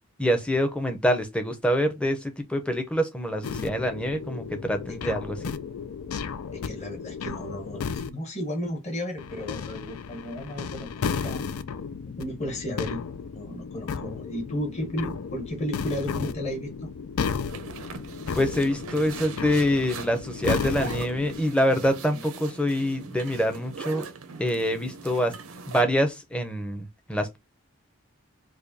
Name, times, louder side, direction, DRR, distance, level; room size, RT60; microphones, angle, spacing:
voice 1, 0.2-5.5 18.3-24.0 24.4-25.3 25.7-27.4, equal, 5° left, 0.6 m, -25 dB
sound 1, 3.4-8.1 9.2-21.4, left 6 dB, 90° left, 0.4 m, -34 dB
voice 2, 6.5-11.4 12.1-13.0 13.3-16.9 22.1-22.2, equal, 30° left, 1.2 m, -34 dB
sound 2, 17.5-25.8, right 5 dB, 85° right, 0.7 m, -41 dB
4.8 x 2.3 x 2.6 m
head